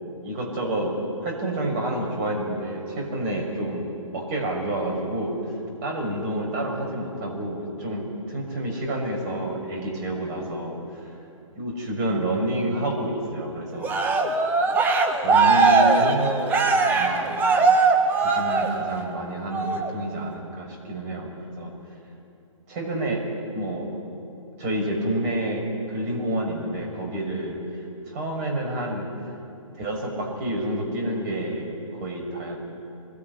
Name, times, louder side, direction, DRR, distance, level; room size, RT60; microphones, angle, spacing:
voice 1, 0.2-0.9 1.2-3.9 4.1-11.1 11.5-13.9 15.2-16.3 16.8-17.5 18.2-21.3 21.6-21.7 22.7-23.3 23.5-23.9 24.6-27.6 28.0-29.1 29.7-32.6, right 1 dB, 30° right, 1 dB, 6.3 m, -29 dB
Cheering, 13.8-19.1 19.5-19.9, right 4 dB, 10° right, 1.7 m, -20 dB
26.5 x 22.0 x 9.9 m, 2.7 s
figure-of-eight pair, 135°, 17 cm